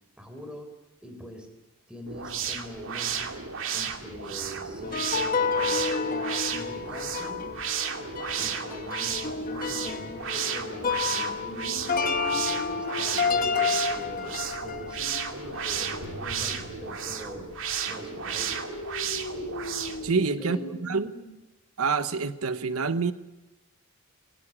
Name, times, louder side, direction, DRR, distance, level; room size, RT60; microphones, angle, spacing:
voice 1, 0.2-0.7 1.0-1.5 1.9-3.3 3.7-7.5 8.4-12.0 12.3-17.5 17.8-18.6 20.4-20.7, equal, 5° right, 6 dB, 4.1 m, -43 dB
sound 1, 2.1-20.1, right 7 dB, 65° right, 2.4 m, -33 dB
sound 2, 4.8-16.1 16.4-16.5, left 5 dB, 40° left, 1.3 m, -30 dB
sound 3, 11.3-21.3, left 1 dB, 85° left, 4.5 m, -40 dB
voice 2, 20.0-21.1 21.8-23.1, right 4 dB, 85° right, 12 dB, 1.0 m, -27 dB
22.0 x 18.5 x 9.8 m, 1.0 s
head